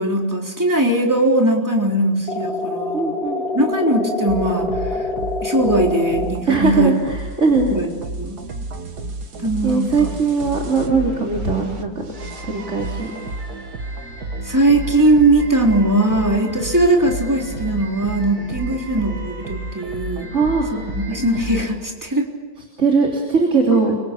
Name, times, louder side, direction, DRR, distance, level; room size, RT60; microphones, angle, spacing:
voice 1, 0.0-3.2 3.5-4.7 4.9-5.1 5.4-6.9 7.7-7.9 8.2-8.4 9.4-10.1 14.4-20.3 20.7-22.3 23.7-23.8, right 1 dB, 10° right, 0 dB, 3.7 m, -19 dB
sound 1, 2.3-6.3, left 3 dB, 70° left, 3.0 m, -25 dB
voice 2, 2.9-3.4 6.5-7.8 9.6-12.1 12.4-13.1 20.3-20.7 22.8-24.0, right 4 dB, 50° right, 0 dB, 3.6 m, -19 dB
sound 2, 4.3-21.9, right 2 dB, 90° right, 2.4 m, -32 dB
sound 3, 12.1-21.6, equal, 70° right, 6.5 m, -37 dB
29.0 x 24.5 x 8.4 m, 1.4 s
omnidirectional pair, 1.7 m